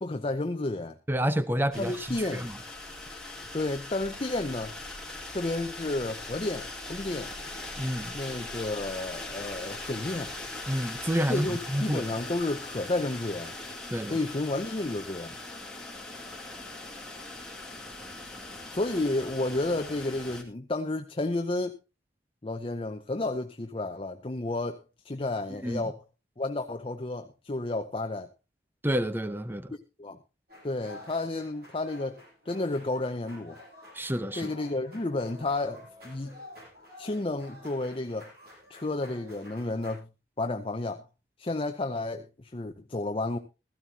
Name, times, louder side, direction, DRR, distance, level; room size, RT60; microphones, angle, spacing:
voice 1, 0.0-1.0 1.8-2.5 3.5-4.7 5.3-7.3 8.1-10.3 11.3-13.5 14.1-15.4 18.7-21.8 22.4-26.0 26.4-28.3 29.7-30.2 30.6-33.6 34.3-36.4 37.0-38.3 38.7-40.1 40.4-41.0 41.4-43.4, left 2 dB, 30° left, 0.7 m, -31 dB
voice 2, 1.1-2.5 7.8-8.1 10.7-12.0 13.9-14.2 25.6-25.8 28.8-29.7 33.9-34.5, equal, 10° right, 0.8 m, -29 dB
sound 1, 1.7-20.4, left 2 dB, 5° left, 2.3 m, -40 dB
sound 2, 30.5-40.0, left 1 dB, 60° right, 6.5 m, -50 dB
16.5 x 14.0 x 2.8 m
head